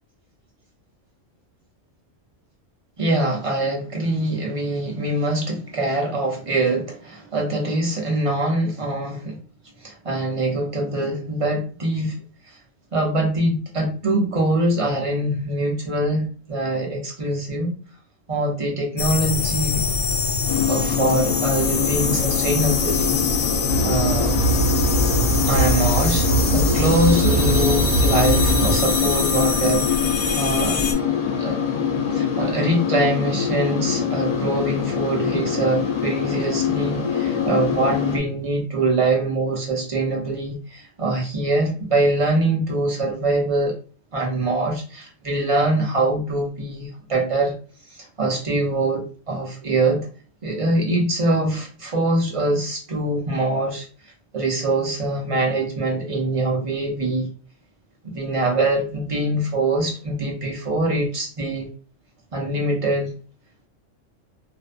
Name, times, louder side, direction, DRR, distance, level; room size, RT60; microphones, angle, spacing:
voice 1, 3.0-9.4 9.8-12.2 12.9-17.7 18.3-19.8 20.7-23.2 23.8-24.4 25.4-26.3 26.5-29.9 30.4-30.8 31.4-31.6 32.1-43.7 44.1-47.5 47.9-50.1 50.4-53.9 54.3-57.3 58.0-61.7 62.3-63.1, right 2 dB, 50° right, 0 dB, 0.4 m, -23 dB
sound 1, 19.0-30.9, left 4 dB, 70° left, 0.9 m, -24 dB
sound 2, 20.5-38.2, left 7 dB, 90° left, 0.3 m, -24 dB
sound 3, 23.7-28.7, right 2 dB, 70° right, 1.0 m, -22 dB
2.5 x 2.1 x 2.4 m, 0.39 s
omnidirectional pair, 1.3 m